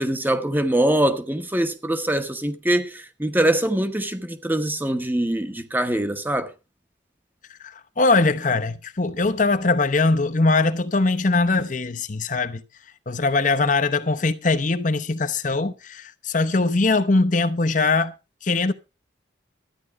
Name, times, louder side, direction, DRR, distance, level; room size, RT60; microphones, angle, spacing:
voice 1, 0.0-6.5, right 1 dB, 10° right, 1.1 m, -23 dB
voice 2, 7.6-12.6 13.1-18.1 18.4-18.7, left 3 dB, 40° left, 0.8 m, -21 dB
13.0 x 9.9 x 4.7 m
head